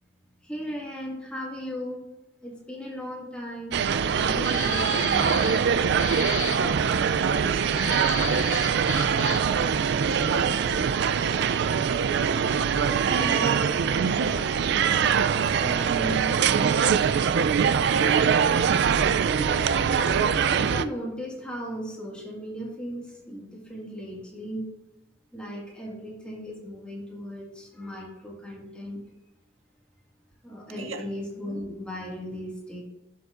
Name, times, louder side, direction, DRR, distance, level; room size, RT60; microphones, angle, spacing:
voice 1, 0.4-2.0 2.4-3.8 4.1-5.4 12.8-15.0 15.6-16.3 19.3-24.7 25.3-29.0 30.4-32.8, equal, 5° left, -3 dB, 1.9 m, -36 dB
sound 1, 3.7-20.8, right 7 dB, 60° right, 0.3 m, -23 dB
sound 2, 4.4-5.7 6.0-6.6 7.7-9.6, left 8 dB, 85° left, 1.0 m, -34 dB
voice 2, 6.5-6.9 7.2-10.9 16.0-16.1 30.8-31.0, right 4 dB, 85° right, 7 dB, 0.8 m, -36 dB
11.0 x 6.8 x 2.5 m, 0.95 s
head